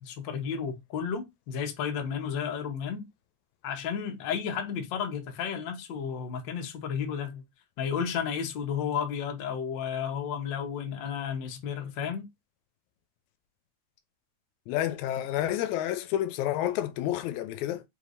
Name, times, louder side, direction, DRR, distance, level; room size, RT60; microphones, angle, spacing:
voice 1, 0.0-3.0 3.6-7.4 7.8-12.3, left 7 dB, 65° left, 1.1 m, -32 dB
voice 2, 14.7-17.8, left 12 dB, 80° left, 1.9 m, -29 dB
4.9 x 3.3 x 2.5 m
omnidirectional pair, 3.4 m